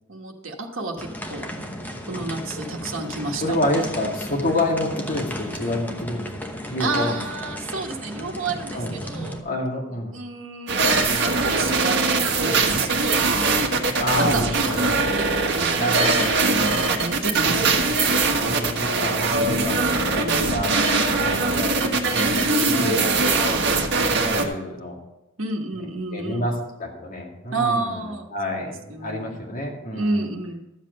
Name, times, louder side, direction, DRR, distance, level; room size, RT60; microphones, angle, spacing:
voice 1, 0.1-1.5 2.1-3.6 6.8-9.4 10.1-13.3 14.2-16.2 16.5-17.9 20.1-20.5 22.3-23.0 25.4-26.4 27.5-29.4 29.9-30.6, right 2 dB, 75° right, 0 dB, 1.3 m, -30 dB
sound 1, 1.0-9.4, equal, 10° left, 0.9 m, -34 dB
voice 2, 3.4-6.3 6.7-7.2 8.7-9.0 9.4-10.2 14.0-15.0 15.7-16.4 18.3-19.8 20.3-20.8 21.2-21.7 22.1-22.4 22.8-23.6 24.0-25.0 26.1-28.0 28.3-30.3, left 1 dB, 45° left, -1 dB, 2.3 m, -28 dB
sound 2, 10.7-24.4, right 3 dB, 60° right, 1.4 m, -21 dB
12.5 x 7.5 x 5.3 m, 0.94 s
head